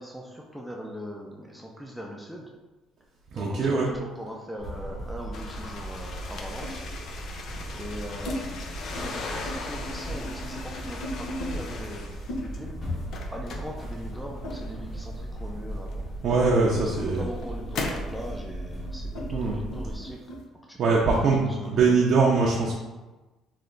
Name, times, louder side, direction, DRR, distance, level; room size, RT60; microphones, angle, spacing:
voice 1, 0.0-2.5 3.3-6.8 7.3-7.4 7.7-8.6 8.9-12.8 13.3-16.1 16.8-20.3 20.7-22.2, equal, ahead, -1 dB, 0.4 m, -40 dB
voice 2, 3.3-3.9 16.2-17.2 19.3-19.6 20.8-22.7, right 4 dB, 50° right, -3 dB, 0.6 m, -22 dB
sound 1, 4.3-5.3 6.6-6.9 7.6-8.4 8.8-9.1 9.4-11.5 12.3-15.2 15.5-20.4, left 1 dB, 80° left, 0.8 m, -40 dB
sound 2, 4.6-20.0, right 1 dB, 25° left, 1.2 m, -37 dB
sound 3, 5.3-12.6 12.9-14.9 15.9-16.0 16.7-18.2, left 3 dB, 55° left, 0.5 m, -38 dB
3.3 x 2.7 x 3.9 m, 1.1 s
cardioid pair, 135°, 0 cm